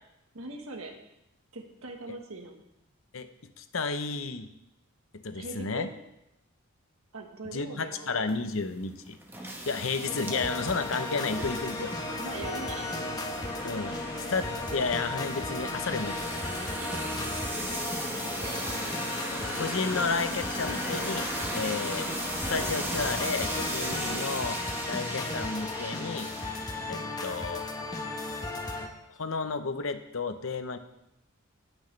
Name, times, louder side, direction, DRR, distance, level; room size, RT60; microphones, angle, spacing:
voice 1, 0.3-1.0 1.5-2.6 5.3-5.9 7.1-8.2 12.2-13.0 16.7-17.0 24.0-24.3, right 2 dB, 85° right, 3 dB, 1.4 m, -41 dB
voice 2, 3.6-4.5 5.2-5.9 7.5-9.2 9.7-11.9 13.6-14.0 14.3-16.2 19.6-21.3 21.5-22.1 22.5-24.5 24.9-26.3 26.9-27.6 29.1-30.8, left 4 dB, 70° left, 9 dB, 0.8 m, -32 dB
sound 1, 8.3-26.9, right 1 dB, 10° right, 1.1 m, -37 dB
sound 2, 10.0-28.9, left 2 dB, 20° left, 1.0 m, -36 dB
Musical instrument, 11.4-24.2, left 2 dB, 50° left, 1.4 m, -43 dB
18.5 x 6.3 x 3.3 m, 0.86 s
head